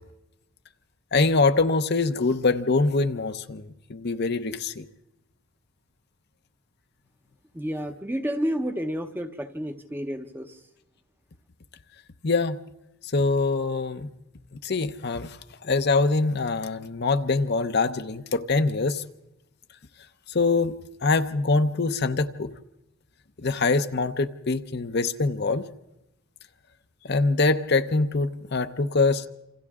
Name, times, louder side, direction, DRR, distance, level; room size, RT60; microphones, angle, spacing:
voice 1, 1.1-4.8 12.2-12.6 13.1-14.1 14.6-19.0 20.3-20.7 21.0-22.5 23.4-25.7 27.0-29.3, left 3 dB, 50° left, 9 dB, 0.7 m, -24 dB
voice 2, 7.5-10.6, equal, 10° right, 7 dB, 0.8 m, -30 dB
28.0 x 26.5 x 3.7 m, 0.92 s
head